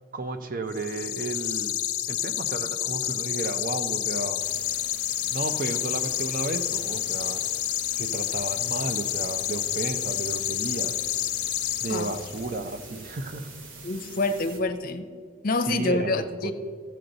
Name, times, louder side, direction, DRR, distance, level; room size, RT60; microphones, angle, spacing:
voice 1, 0.1-1.7 2.1-4.4 5.2-7.4 8.0-10.9 11.8-13.5 15.7-16.5, right 2 dB, 40° right, 9 dB, 0.6 m, -33 dB
sound 1, 0.7-12.5, left 13 dB, 90° left, 0.6 m, -29 dB
sound 2, 4.4-14.6, right 3 dB, 65° right, 1.2 m, -45 dB
voice 2, 13.8-15.1 15.4-16.5, left 2 dB, 40° left, 7 dB, 0.6 m, -27 dB
14.0 x 7.7 x 3.9 m, 2.1 s
head